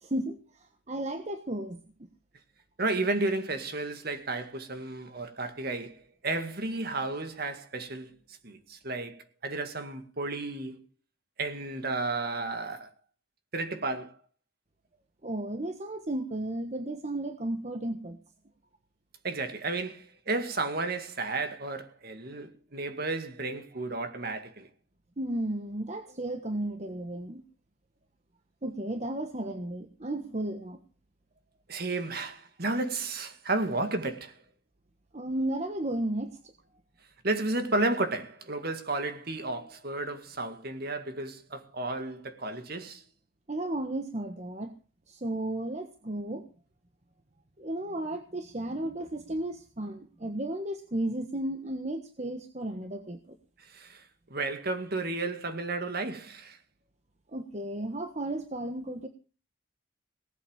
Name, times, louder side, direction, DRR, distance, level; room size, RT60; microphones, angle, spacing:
voice 1, 0.0-1.8 15.2-18.2 25.2-27.4 28.6-30.8 35.1-36.5 43.5-44.7 45.1-46.4 47.6-53.4 57.3-59.1, right 1 dB, 35° right, 1.3 m, -34 dB
voice 2, 2.8-8.1 8.4-10.9 11.4-12.9 13.5-14.2 19.2-24.7 31.7-34.4 37.2-43.0 53.6-56.6, right 2 dB, 50° right, 2.1 m, -33 dB
18.5 x 8.2 x 7.3 m
head